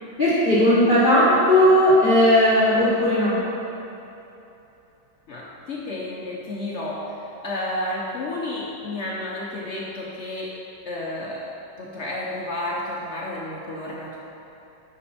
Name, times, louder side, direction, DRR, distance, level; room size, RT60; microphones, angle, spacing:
voice 1, 0.2-3.5, left 1 dB, 30° left, -10 dB, 1.3 m, -17 dB
voice 2, 5.3-10.5 10.9-11.5 11.8-14.2, left 1 dB, 60° left, -4 dB, 0.7 m, -31 dB
9.5 x 5.2 x 4.2 m, 2.9 s
omnidirectional pair, 2.3 m